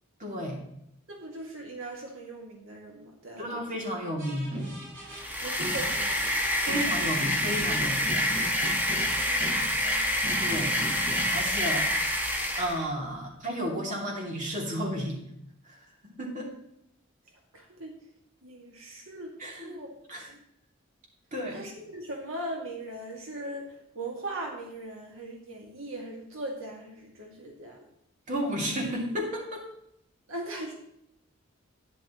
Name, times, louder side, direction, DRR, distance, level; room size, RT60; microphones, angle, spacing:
voice 1, 0.2-0.6 3.4-4.5 6.6-8.1 10.4-10.7 11.3-11.9 12.6-15.2 15.7-15.8 16.0-16.6 19.4-19.8 20.1-20.3 21.3-21.6 28.3-29.7, equal, 40° right, -1 dB, 2.7 m, -32 dB
voice 2, 1.1-3.6 5.4-6.5 8.9-10.1 17.5-17.9 18.4-19.3 19.6-19.9 20.3-20.4 21.5-27.8 30.3-30.7, right 1 dB, 75° right, 0 dB, 2.0 m, -39 dB
sound 1, 4.2-5.3 5.6-10.0 10.2-11.4, equal, 60° right, 4.9 m, -39 dB
sound 2, 5.1-12.9, left 1 dB, 10° right, 1.2 m, -27 dB
11.5 x 10.0 x 3.1 m, 0.76 s
head